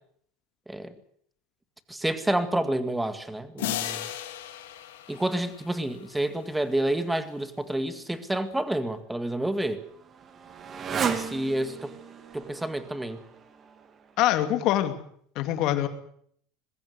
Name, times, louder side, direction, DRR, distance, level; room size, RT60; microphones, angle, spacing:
voice 1, 1.9-4.1 5.1-9.8 10.9-11.9 12.3-13.2, right 1 dB, 5° right, 11 dB, 1.9 m, -29 dB
sound 1, 3.6-6.3, left 13 dB, 90° left, 2.5 m, -36 dB
Motorcycle, 8.9-14.3, right 6 dB, 30° right, 2.1 m, -35 dB
voice 2, 14.2-14.9 15.4-15.9, left 13 dB, 55° left, 9 dB, 2.5 m, -24 dB
21.0 x 16.0 x 8.2 m, 0.65 s
supercardioid pair, 120°, 0 cm